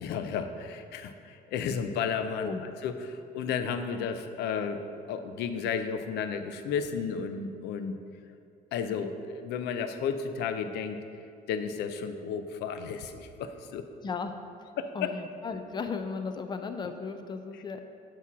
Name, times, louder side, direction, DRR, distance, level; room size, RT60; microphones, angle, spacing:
voice 1, 0.0-2.5 2.8-8.0 8.7-11.0 11.5-13.9 14.8-15.1, left 6 dB, 80° left, 9 dB, 0.5 m, -33 dB
voice 2, 14.9-17.8, left 5 dB, 25° left, 7 dB, 0.5 m, -35 dB
8.1 x 3.0 x 6.0 m, 2.4 s
cardioid pair, 110°, 17 cm